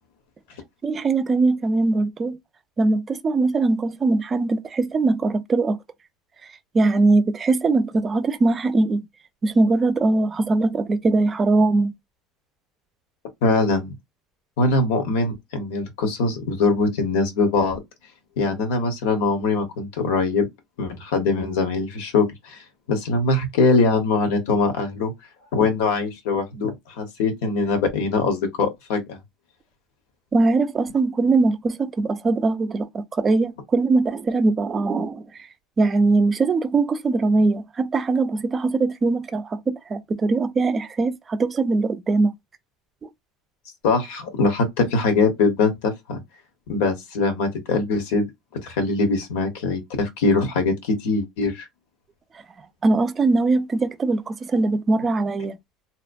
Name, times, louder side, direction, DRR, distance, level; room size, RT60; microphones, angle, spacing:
voice 1, 0.8-2.4 2.8-5.8 6.7-9.0 9.4-11.9 30.3-35.2 35.8-42.3 52.8-55.5, right 3 dB, 30° right, 0.4 m, -21 dB
voice 2, 13.4-13.9 14.6-17.8 18.4-20.5 20.8-22.6 22.9-25.1 25.5-29.2 43.8-46.2 46.7-48.3 48.6-51.7, left 3 dB, 85° left, 0.9 m, -22 dB
2.8 x 2.1 x 2.5 m
supercardioid pair, 110°, 0 cm